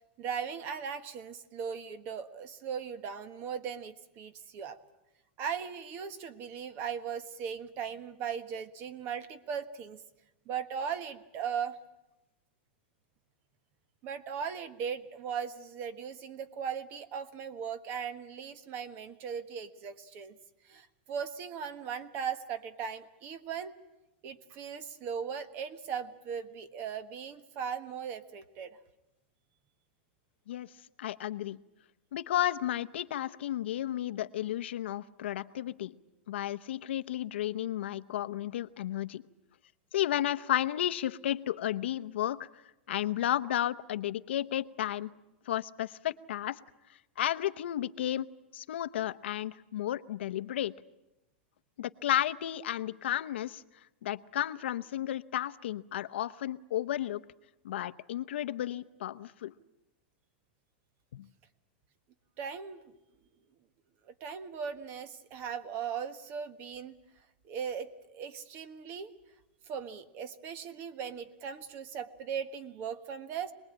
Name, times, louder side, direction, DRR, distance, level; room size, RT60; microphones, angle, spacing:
voice 1, 0.2-4.8 5.4-10.0 10.5-11.8 14.0-20.4 20.6-23.7 24.2-28.8 62.4-62.8 64.1-67.0 67.4-69.1 69.7-73.5, right 7 dB, 35° right, 12 dB, 1.4 m, -38 dB
voice 2, 31.0-31.6 32.1-35.9 36.3-39.2 39.9-42.5 42.9-45.1 45.5-46.6 47.2-48.3 48.5-50.7 51.8-53.6 54.0-57.2 57.6-59.5 61.1-61.3, left 12 dB, 85° left, 13 dB, 0.9 m, -33 dB
26.0 x 20.5 x 8.8 m, 0.95 s
supercardioid pair, 155°, 6 cm